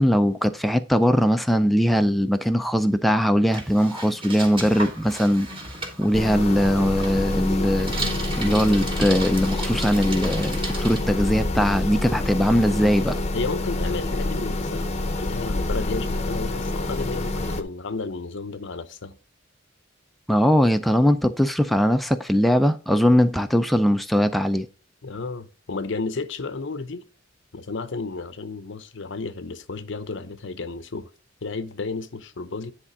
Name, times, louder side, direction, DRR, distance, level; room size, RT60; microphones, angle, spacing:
voice 1, 0.0-5.5 6.0-7.9 8.4-13.2 20.3-24.7, equal, ahead, 0.5 m, -20 dB
Bicycle, 3.5-11.0, right 2 dB, 25° right, 2.3 m, -35 dB
sound 1, 6.1-17.6, left 2 dB, 35° left, 0.8 m, -27 dB
voice 2, 13.3-19.2 25.0-27.0 27.5-31.1 31.4-32.7, left 3 dB, 65° left, 0.7 m, -32 dB
10.0 x 3.7 x 4.9 m
head